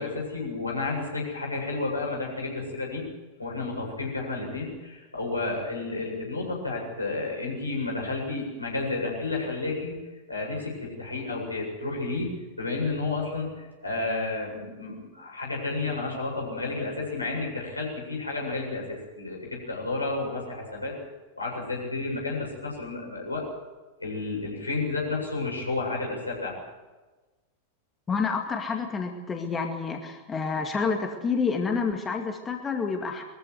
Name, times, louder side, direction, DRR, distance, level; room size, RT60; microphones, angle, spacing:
voice 1, 0.0-3.0 3.4-10.0 10.3-12.3 12.6-20.9 21.4-23.5 24.0-26.6, left 3 dB, 80° left, -1 dB, 7.7 m, -31 dB
voice 2, 28.1-33.2, left 5 dB, 20° left, 3 dB, 2.2 m, -28 dB
22.5 x 15.0 x 9.5 m, 1.2 s
figure-of-eight pair, 90°, 0 cm